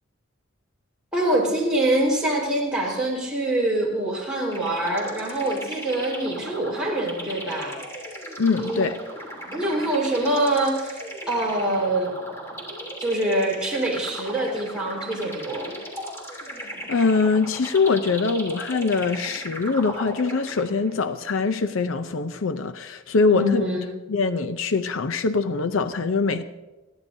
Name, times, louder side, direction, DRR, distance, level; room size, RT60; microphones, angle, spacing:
voice 1, 1.1-7.8 8.6-8.8 9.5-11.0 11.3-12.1 13.0-15.7 23.3-23.9, right 1 dB, 5° right, 4.5 m, -24 dB
sound 1, 4.5-20.9, right 1 dB, 10° left, 3.1 m, -37 dB
voice 2, 8.4-8.9 16.6-23.6 24.1-26.4, left 4 dB, 65° left, 0.6 m, -23 dB
29.5 x 11.0 x 2.7 m
head